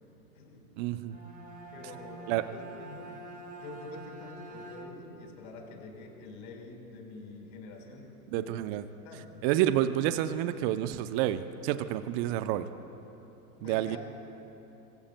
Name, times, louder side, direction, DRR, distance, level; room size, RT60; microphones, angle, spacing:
voice 1, 0.8-1.2 2.3-2.4 8.3-8.9 9.4-12.7 13.6-14.0, right 12 dB, 40° right, 11 dB, 0.8 m, -29 dB
Bowed string instrument, 1.0-5.3, right 2 dB, 20° right, 2.7 m, -46 dB
voice 2, 1.7-3.1 3.6-8.1 8.3-8.5 9.0-9.4 13.6-14.0, left 3 dB, 60° left, 1 dB, 4.6 m, -46 dB
25.5 x 24.5 x 2.3 m, 3.0 s
hypercardioid pair, 100°, 48 cm